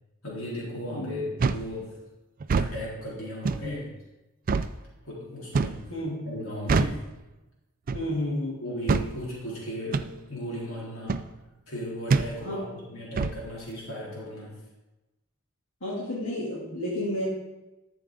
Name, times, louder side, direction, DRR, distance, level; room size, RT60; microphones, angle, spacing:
voice 1, 0.2-2.0 2.6-4.0 5.0-5.9 6.2-7.0 8.6-11.3 11.7-14.6, left 1 dB, 90° left, -5 dB, 3.9 m, -36 dB
voice 2, 0.9-1.2 5.9-6.3 7.9-8.6 12.4-12.8 15.8-17.3, left 1 dB, 65° left, -7 dB, 2.7 m, -31 dB
sound 1, 1.4-1.7 2.4-2.7 3.4-3.7 4.5-4.7 5.5-5.8 6.7-7.0 7.9-8.1 8.9-9.1 9.9-10.1 11.1-11.3 12.1-12.3 13.2-13.4, right 4 dB, 40° right, 0.4 m, -25 dB
12.5 x 7.0 x 3.7 m, 1.0 s
head